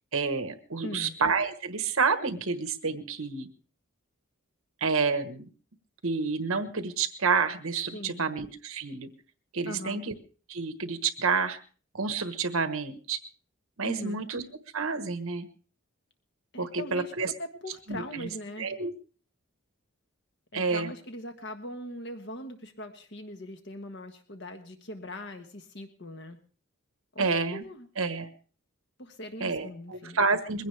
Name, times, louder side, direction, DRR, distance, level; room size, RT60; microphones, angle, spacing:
voice 1, 0.1-3.5 4.8-5.5 6.0-9.1 9.5-10.1 10.5-11.6 11.9-13.2 13.8-14.4 14.7-15.5 16.6-17.3 17.9-18.3 18.6-18.9 20.5-20.9 27.2-27.6 28.0-28.3 29.4-30.7, right 4 dB, 70° right, 9 dB, 1.3 m, -29 dB
voice 2, 0.8-1.2 7.9-8.3 9.6-10.0 13.8-14.2 16.5-18.7 20.5-26.4 27.1-27.9 29.0-30.2, left 1 dB, 50° left, 6 dB, 1.4 m, -41 dB
22.0 x 16.5 x 3.4 m, 0.40 s
head